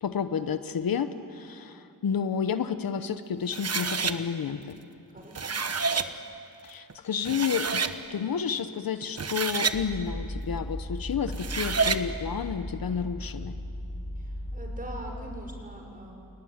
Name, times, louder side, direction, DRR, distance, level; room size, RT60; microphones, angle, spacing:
voice 1, 0.0-4.8 6.6-7.8 8.1-13.5, left 7 dB, 75° left, 11 dB, 1.1 m, -30 dB
sound 1, 3.5-4.2 5.2-6.1 6.9-7.0 7.3-8.0 9.0-9.8 11.3-12.0, right 5 dB, 45° right, 1.2 m, -28 dB
voice 2, 5.1-5.6 14.2-16.1, right 1 dB, 25° right, 2 dB, 5.9 m, -42 dB
sound 2, 9.7-15.6, left 1 dB, 15° left, 4.3 m, -37 dB
29.5 x 18.0 x 9.6 m, 2.7 s
wide cardioid pair, 95°, 35 cm